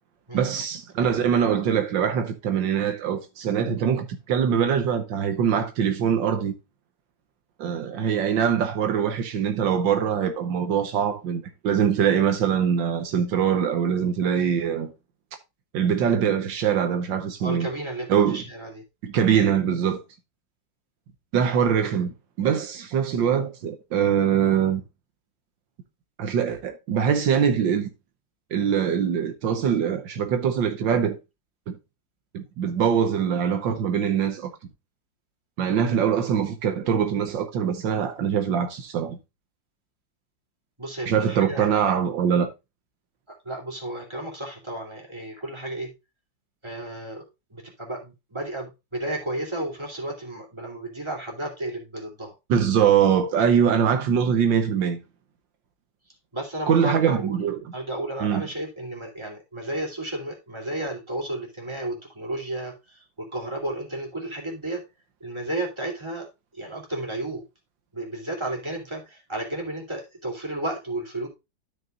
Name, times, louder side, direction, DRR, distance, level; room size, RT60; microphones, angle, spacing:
voice 1, 0.3-6.5 7.6-14.9 15.7-17.7 18.1-18.4 19.0-20.0 21.3-24.8 26.2-27.9 28.5-31.2 31.7-31.8 32.3-34.5 35.6-39.2 41.1-42.5 52.5-55.0 56.7-57.6 58.2-58.5, right 8 dB, 80° right, 1.6 m, -23 dB
voice 2, 17.4-18.8 40.8-41.9 43.3-45.9 46.6-47.2 47.5-52.4 56.3-64.8 65.2-66.3 66.5-67.4 67.9-71.3, right 1 dB, 15° right, 2.7 m, -33 dB
12.5 x 5.9 x 2.5 m
omnidirectional pair, 2.0 m